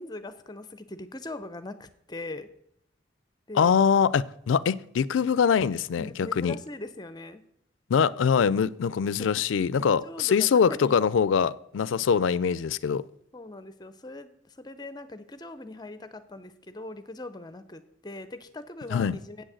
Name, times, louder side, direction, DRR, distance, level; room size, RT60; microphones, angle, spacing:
voice 1, 0.0-2.5 3.5-3.8 6.0-7.4 9.2-9.3 9.8-11.0 13.3-19.4, left 2 dB, 20° left, 0.6 m, -41 dB
voice 2, 3.5-6.6 7.9-13.0 18.9-19.2, left 6 dB, 85° left, 0.4 m, -23 dB
8.1 x 6.3 x 7.7 m
head